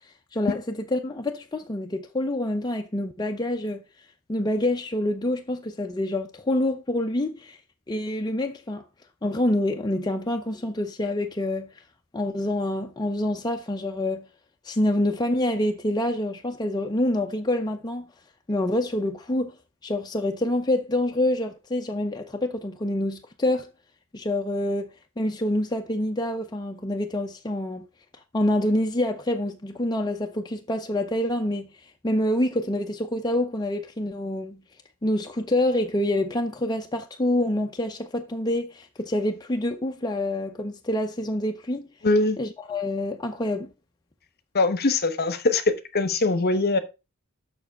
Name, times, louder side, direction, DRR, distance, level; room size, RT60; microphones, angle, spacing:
voice 1, 0.3-3.8 4.3-7.6 7.9-8.8 9.2-11.7 12.1-14.3 14.6-18.1 18.5-19.5 19.8-23.7 24.1-24.9 25.2-27.9 28.3-31.7 32.0-34.6 35.0-41.9 42.4-43.7, left 1 dB, 20° left, 0.6 m, -26 dB
voice 2, 42.0-42.4 44.5-45.6 45.9-46.8, left 3 dB, 45° left, 1.0 m, -22 dB
7.0 x 6.0 x 5.1 m
head